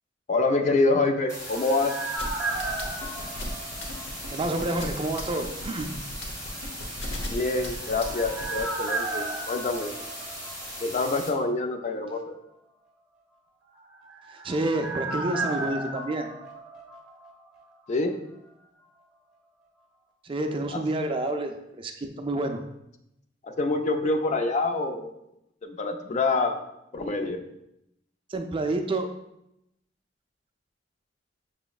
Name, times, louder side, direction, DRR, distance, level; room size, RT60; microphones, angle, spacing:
voice 1, 0.3-1.9 7.3-9.9 10.8-12.4 17.9-18.2 20.7-20.8 23.4-25.1 25.6-26.6 26.9-27.4, left 3 dB, 40° left, 6 dB, 0.4 m, -26 dB
sound 1, 0.8-4.7 4.9-5.0 7.4-11.2 11.4-11.5 13.8-17.6 17.9-18.0, right 2 dB, 5° right, 0.8 m, -35 dB
sound 2, 1.3-11.3, equal, 15° left, 1.1 m, -39 dB
sound 3, 2.2-8.6, left 1 dB, 90° left, 0.9 m, -36 dB
voice 2, 4.3-5.9 14.4-16.3 20.2-22.6 28.3-29.1, right 2 dB, 30° right, 5 dB, 0.4 m, -29 dB
6.7 x 3.0 x 2.3 m, 0.83 s
head